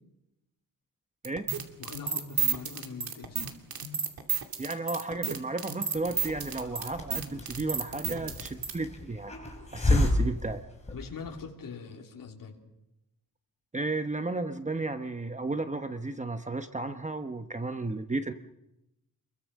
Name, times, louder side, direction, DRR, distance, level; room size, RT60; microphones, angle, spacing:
sound 1, 1.2-8.7, right 6 dB, 80° right, 2.8 m, -31 dB
voice 1, 1.8-3.5 10.9-12.6, left 5 dB, 65° left, 1 dB, 3.3 m, -42 dB
voice 2, 4.6-9.3 9.6-10.6 13.7-18.3, right 3 dB, 20° right, 8 dB, 0.9 m, -33 dB
Hiss, 5.9-11.4, left 2 dB, 20° left, 5.1 m, -32 dB
29.0 x 22.5 x 6.5 m, 0.90 s
wide cardioid pair, 160°, 36 cm